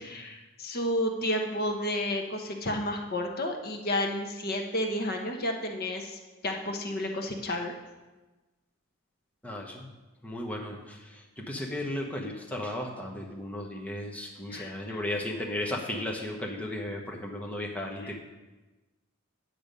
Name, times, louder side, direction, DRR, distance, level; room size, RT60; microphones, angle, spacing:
voice 1, 0.0-7.7 14.5-15.0 18.0-18.1, left 1 dB, 45° left, 3 dB, 0.9 m, -31 dB
voice 2, 9.4-9.9 10.2-18.1, left 1 dB, 5° left, -1 dB, 1.0 m, -35 dB
8.6 x 7.8 x 5.2 m, 1.2 s
head